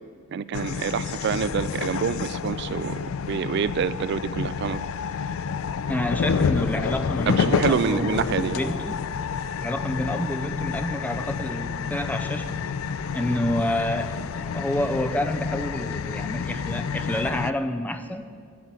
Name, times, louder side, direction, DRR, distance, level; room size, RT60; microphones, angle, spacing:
voice 1, 0.3-4.8 7.3-8.6, right 6 dB, 55° right, 16 dB, 0.3 m, -27 dB
sound 1, 0.5-17.5, left 6 dB, 85° left, 0.4 m, -29 dB
voice 2, 5.9-9.0 9.6-12.6 13.1-18.3, left 1 dB, 10° left, 7 dB, 0.5 m, -29 dB
11.0 x 9.4 x 7.5 m, 2.2 s
head